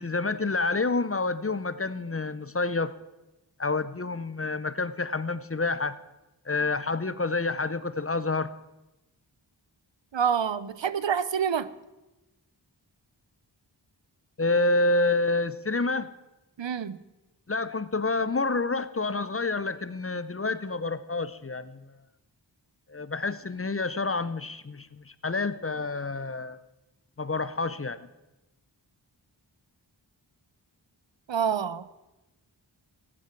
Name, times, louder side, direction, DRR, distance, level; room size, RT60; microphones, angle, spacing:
voice 1, 0.0-2.9 3.6-5.9 6.5-8.6 14.4-16.1 17.5-22.0 22.9-26.6 27.2-28.0, left 3 dB, 30° left, 0.6 m, -28 dB
voice 2, 10.1-11.7 16.6-17.0 31.3-31.9, right 7 dB, 75° right, 0.6 m, -27 dB
19.0 x 8.7 x 4.5 m
wide cardioid pair, 40°, 45 cm